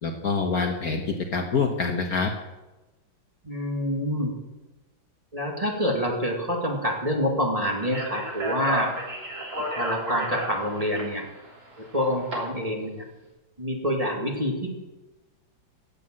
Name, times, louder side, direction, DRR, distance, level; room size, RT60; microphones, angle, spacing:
voice 1, 0.0-2.3, left 5 dB, 55° left, 3 dB, 1.4 m, -26 dB
voice 2, 3.4-4.3 5.3-8.9 9.7-11.2 11.8-13.0 13.6-14.7, equal, 20° right, 0 dB, 2.0 m, -27 dB
Speech, 7.8-12.3, right 1 dB, 40° right, 3.4 m, -32 dB
15.5 x 7.7 x 7.5 m, 1.1 s
omnidirectional pair, 2.2 m